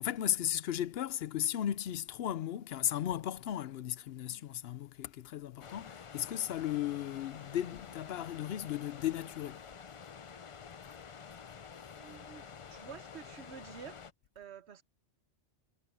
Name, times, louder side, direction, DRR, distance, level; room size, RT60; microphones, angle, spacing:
voice 1, 0.0-9.6, left 11 dB, 65° left, 0.8 m, -35 dB
sound 1, 5.6-14.1, left 6 dB, 45° left, 0.4 m, -49 dB
voice 2, 11.9-14.1 14.3-14.8, right 7 dB, 70° right, 1.2 m, -50 dB
omnidirectional pair, 1.2 m